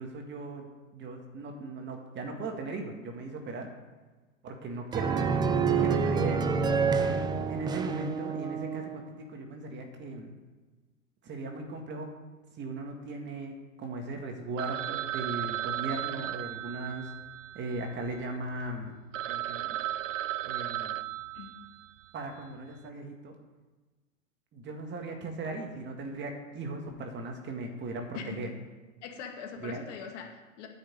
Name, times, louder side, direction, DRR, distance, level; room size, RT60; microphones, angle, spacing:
voice 1, 0.0-3.7 4.4-5.1 5.6-6.4 7.5-10.3 11.2-12.1 12.6-17.1 17.5-18.9 19.3-19.8 20.4-21.0 22.1-23.4 24.5-28.5 29.6-29.8, right 2 dB, 25° right, 3 dB, 2.0 m, -38 dB
sound 1, 4.9-9.1, right 5 dB, 10° right, 0.5 m, -28 dB
Telephone, 14.6-18.4 18.8-18.9 19.1-22.0, right 13 dB, 65° right, 0.6 m, -35 dB
voice 2, 21.3-21.7 28.1-28.5 29.0-30.7, left 6 dB, 60° left, 2 dB, 2.3 m, -42 dB
9.6 x 6.4 x 8.4 m, 1.3 s
hypercardioid pair, 115°, 40 cm